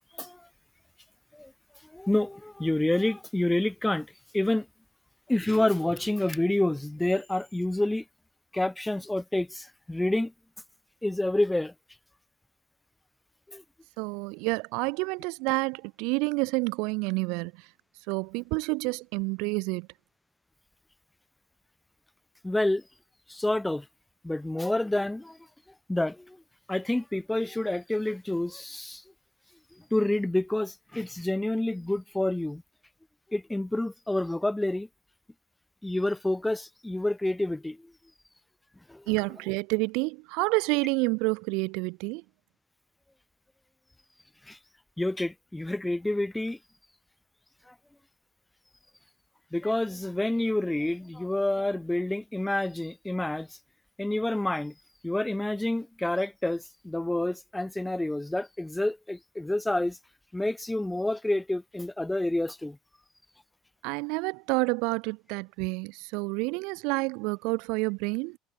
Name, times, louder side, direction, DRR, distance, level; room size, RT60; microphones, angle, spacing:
voice 1, 1.9-4.1 4.3-4.7 5.3-8.0 8.5-10.3 11.0-11.7 13.5-13.6 22.4-22.8 23.3-23.8 24.2-25.4 25.9-26.4 26.7-29.0 29.9-32.6 33.3-34.9 35.8-37.8 38.9-39.0 44.5-44.6 45.0-46.6 47.7-47.8 49.5-53.5 54.0-54.7 55.0-60.0 60.3-62.8, left 1 dB, 5° left, 0.4 m, -28 dB
voice 2, 14.0-17.7 18.1-19.9 39.1-42.2 63.8-68.4, right 29 dB, 80° right, 1.9 m, -29 dB
cardioid pair, 130°, 0 cm